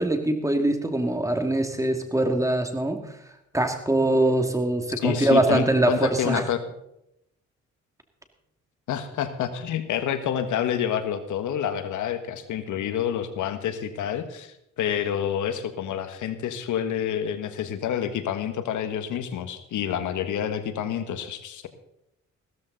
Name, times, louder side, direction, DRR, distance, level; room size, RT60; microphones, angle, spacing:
voice 1, 0.0-3.0 3.5-6.4, right 1 dB, 10° right, 5 dB, 2.4 m, -23 dB
voice 2, 5.0-6.6 8.9-21.7, left 9 dB, 80° left, 10 dB, 1.5 m, -28 dB
16.0 x 13.5 x 4.0 m, 0.79 s
cardioid pair, 90°, 30 cm